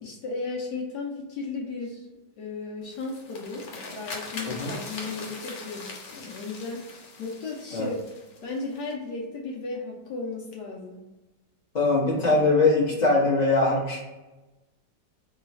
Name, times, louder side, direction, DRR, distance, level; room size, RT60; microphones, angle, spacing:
voice 1, 0.0-2.1 2.4-3.7 3.9-6.9 7.2-8.0 8.4-11.0 12.0-12.4, left 3 dB, 70° left, -1 dB, 1.2 m, -35 dB
sound 1, 2.8-8.9, left 3 dB, 90° left, 1.6 m, -41 dB
voice 2, 11.7-14.0, left 3 dB, 30° left, -4 dB, 0.8 m, -22 dB
3.2 x 2.3 x 4.0 m, 1.1 s
omnidirectional pair, 2.0 m